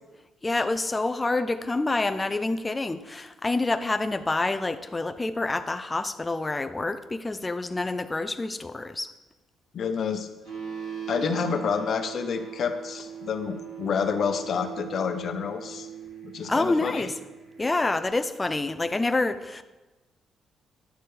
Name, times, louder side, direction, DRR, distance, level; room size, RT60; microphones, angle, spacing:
voice 1, 0.4-9.1 16.5-17.2 17.6-19.6, left 2 dB, 20° left, 9 dB, 0.4 m, -27 dB
voice 2, 9.7-10.3 11.1-15.9 16.2-17.1, left 6 dB, 60° left, 8 dB, 0.8 m, -28 dB
sound 1, 10.4-18.1, right 8 dB, 75° right, 3.1 m, -40 dB
10.0 x 6.8 x 3.3 m, 1.1 s
cardioid pair, 90°, 0 cm